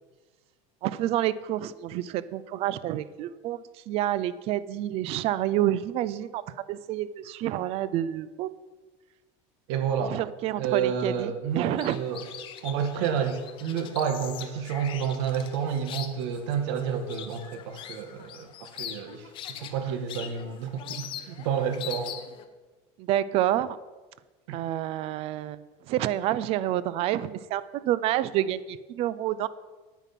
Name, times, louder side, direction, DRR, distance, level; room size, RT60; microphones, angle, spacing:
voice 1, 0.8-8.5 10.0-12.0 23.0-23.8 24.5-25.6 25.9-29.5, right 13 dB, 40° right, 17 dB, 0.5 m, -28 dB
voice 2, 9.7-10.2 10.6-12.2 12.6-19.3 19.6-22.1 24.5-24.6, right 7 dB, 75° right, 7 dB, 1.6 m, -30 dB
sound 1, 11.6-22.4, left 10 dB, 35° left, 0.8 m, -42 dB
9.2 x 9.0 x 5.8 m, 1.2 s
cardioid pair, 165°, 15 cm